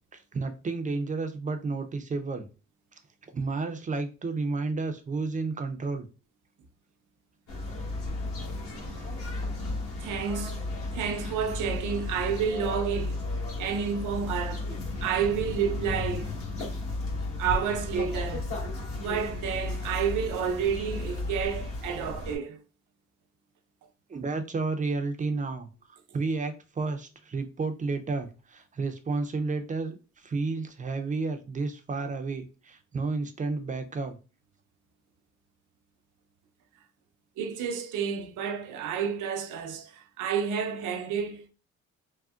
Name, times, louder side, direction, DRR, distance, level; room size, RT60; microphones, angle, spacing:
voice 1, 0.1-2.5 3.3-6.1 24.1-34.2, right 3 dB, 25° right, 0.5 m, -31 dB
sound 1, 7.5-22.4, left 2 dB, 50° left, 1.3 m, -34 dB
voice 2, 10.0-13.2 13.6-14.7 15.0-16.3 16.7-16.8 17.4-18.5 18.9-22.6 37.4-41.5, right 7 dB, 85° right, 0.6 m, -30 dB
3.6 x 2.1 x 2.3 m
cardioid pair, 90°, 30 cm